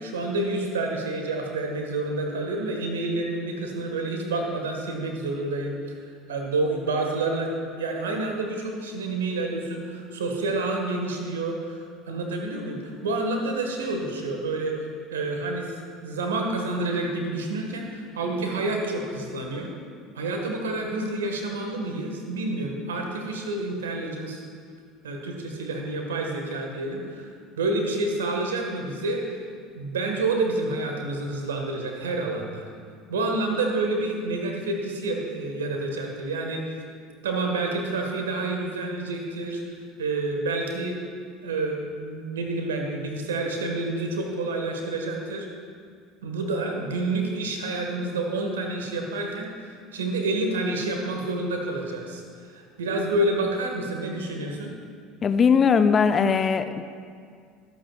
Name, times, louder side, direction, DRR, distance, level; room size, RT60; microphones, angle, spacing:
voice 1, 0.0-5.7 6.3-7.5 7.8-15.7 16.0-19.7 20.1-24.4 25.0-27.3 27.6-29.4 29.7-32.6 33.1-36.8 37.2-39.6 40.0-41.0 41.4-45.5 46.2-52.2 52.5-54.7, right 2 dB, 75° right, 2 dB, 1.6 m, -28 dB
voice 2, 55.2-56.8, left 6 dB, 30° left, 10 dB, 0.5 m, -20 dB
23.0 x 8.5 x 2.4 m, 2.1 s
figure-of-eight pair, 70°, 0 cm